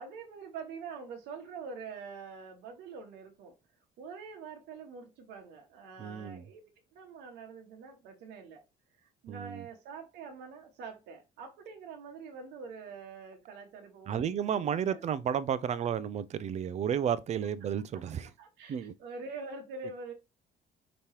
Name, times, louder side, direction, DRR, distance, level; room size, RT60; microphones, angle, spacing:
voice 1, 0.0-3.5 4.0-6.6 6.9-8.6 8.9-15.0 18.4-20.1, right 4 dB, 80° right, 1.0 m, -45 dB
voice 2, 6.0-6.4 9.3-9.7 14.1-18.3 18.7-18.9, right 8 dB, 40° right, 0.4 m, -32 dB
5.2 x 2.9 x 3.0 m
cardioid pair, 110°, 17 cm